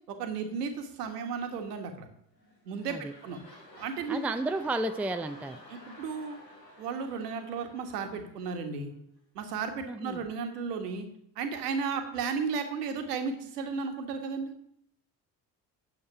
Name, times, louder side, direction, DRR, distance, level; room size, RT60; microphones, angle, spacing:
voice 1, 0.1-2.1 2.6-3.4 3.8-4.2 5.7-6.4 6.8-8.9 9.3-11.1 11.3-14.5, right 5 dB, 70° right, 6 dB, 1.6 m, -34 dB
sound 1, 2.3-8.9 9.4-9.5, left 1 dB, 90° left, 1.8 m, -52 dB
voice 2, 4.1-5.6 9.9-10.2, right 2 dB, 5° right, 8 dB, 0.5 m, -32 dB
8.6 x 8.0 x 5.7 m, 0.72 s
figure-of-eight pair, 50°, 49 cm